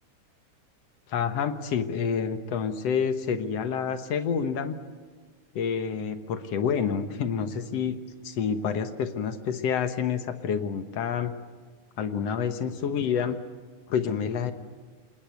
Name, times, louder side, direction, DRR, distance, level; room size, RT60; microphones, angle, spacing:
voice 1, 1.1-4.8 5.6-11.3 12.0-13.4 13.9-14.5, left 7 dB, 60° left, 9 dB, 2.1 m, -28 dB
27.5 x 21.0 x 9.3 m, 1.5 s
omnidirectional pair, 3.6 m